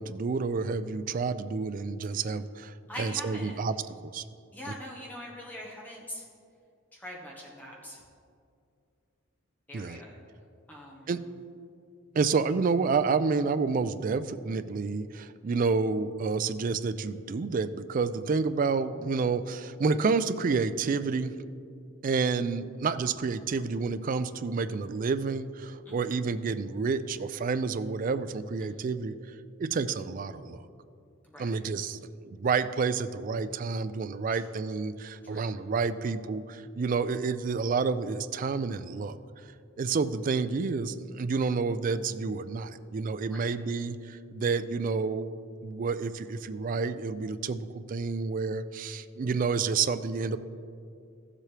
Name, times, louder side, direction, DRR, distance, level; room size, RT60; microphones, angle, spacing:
voice 1, 0.0-3.8 4.0-4.2 9.7-10.0 11.1-11.2 12.1-21.3 22.0-29.2 29.6-30.6 31.4-32.0 32.2-39.2 39.8-45.3 45.6-50.4, right 4 dB, 40° right, 12 dB, 0.3 m, -29 dB
voice 2, 2.9-3.6 4.5-6.3 6.9-8.0 9.7-10.1 10.7-11.3 25.8-26.2 28.6-28.8 31.2-31.5 34.3-34.5 35.2-35.5 43.3-43.5, equal, 10° left, -4 dB, 1.3 m, -43 dB
14.5 x 7.5 x 3.3 m, 2.4 s
head